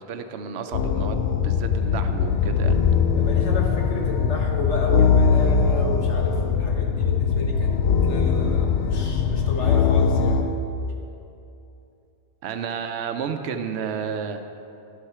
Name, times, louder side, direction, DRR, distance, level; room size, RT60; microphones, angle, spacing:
voice 1, 0.0-2.8 12.4-14.5, right 6 dB, 75° right, 7 dB, 0.9 m, -31 dB
sound 1, 0.7-10.4, left 6 dB, 70° left, 0.8 m, -21 dB
voice 2, 3.1-7.8 8.0-10.4, left 2 dB, 90° left, 0 dB, 1.5 m, -32 dB
11.0 x 8.2 x 4.3 m, 2.7 s
omnidirectional pair, 1.2 m